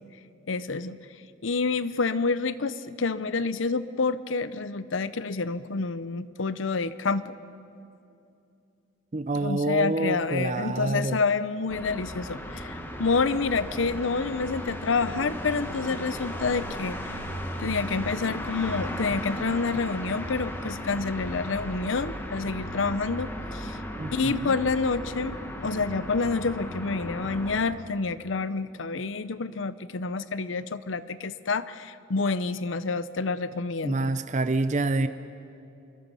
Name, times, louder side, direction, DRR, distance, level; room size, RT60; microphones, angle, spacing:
voice 1, 0.5-1.0 1.4-7.3 9.3-17.2 17.6-23.8 24.1-34.1, left 4 dB, 80° left, 15 dB, 0.7 m, -28 dB
voice 2, 9.1-11.2 24.0-24.6 33.8-35.1, right 2 dB, 40° right, 11 dB, 0.6 m, -27 dB
sound 1, 11.7-27.6, equal, 10° left, 1.6 m, -36 dB
26.0 x 22.5 x 5.6 m, 2.6 s
head